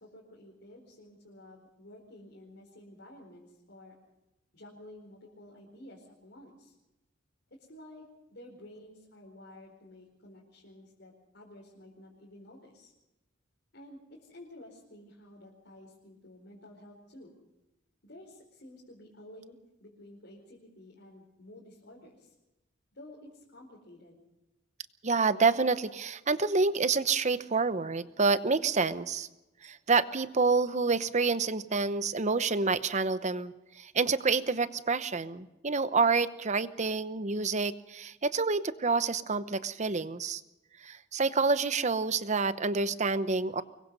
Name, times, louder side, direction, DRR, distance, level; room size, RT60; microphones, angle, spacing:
voice 1, 0.0-3.9 4.5-6.7 7.5-8.0 8.3-12.9 13.7-17.4 18.0-22.3 22.9-24.2, left 1 dB, 60° left, -3 dB, 4.5 m, -52 dB
voice 2, 25.0-29.3 29.6-40.4 40.8-43.6, right 4 dB, 35° right, 13 dB, 0.9 m, -28 dB
25.0 x 22.0 x 5.4 m, 0.96 s
head